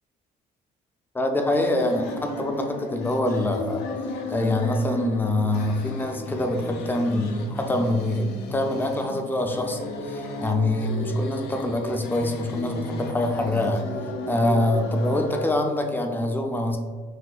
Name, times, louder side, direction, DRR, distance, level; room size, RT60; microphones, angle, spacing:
voice 1, 1.1-3.9 4.3-13.9 14.3-16.8, left 1 dB, 10° left, 4 dB, 0.4 m, -25 dB
sound 1, 1.5-15.5, left 3 dB, 80° left, 0.5 m, -34 dB
5.9 x 2.7 x 2.4 m, 1.4 s
cardioid pair, 110°, 17 cm